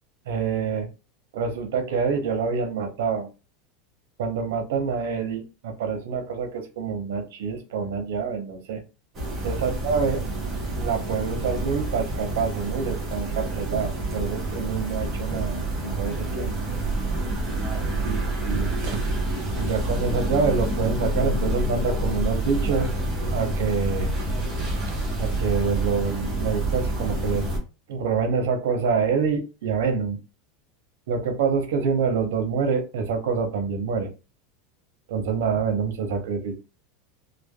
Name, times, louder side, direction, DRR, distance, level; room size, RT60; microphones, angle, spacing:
voice 1, 0.3-0.9 1.3-3.3 4.2-8.8 9.4-10.2 10.8-16.5 18.0-18.2 18.4-19.0 19.6-22.9 23.3-24.1 25.2-27.5 27.9-30.2 31.1-34.1 35.1-36.5, right 5 dB, 80° right, 6 dB, 0.7 m, -26 dB
sound 1, 9.1-27.6, right 1 dB, 20° right, 0.8 m, -28 dB
3.2 x 2.1 x 2.2 m, 0.31 s
supercardioid pair, 170°, 0 cm